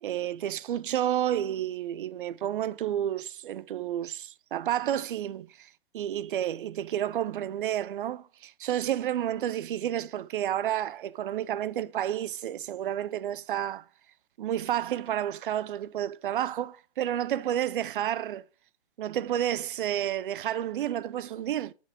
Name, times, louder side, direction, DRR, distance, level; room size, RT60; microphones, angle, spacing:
voice 1, 0.0-13.8 14.4-18.4 19.0-21.7, right 11 dB, 50° right, 0.4 m, -30 dB
9.5 x 6.8 x 2.8 m
hypercardioid pair, 145°, 33 cm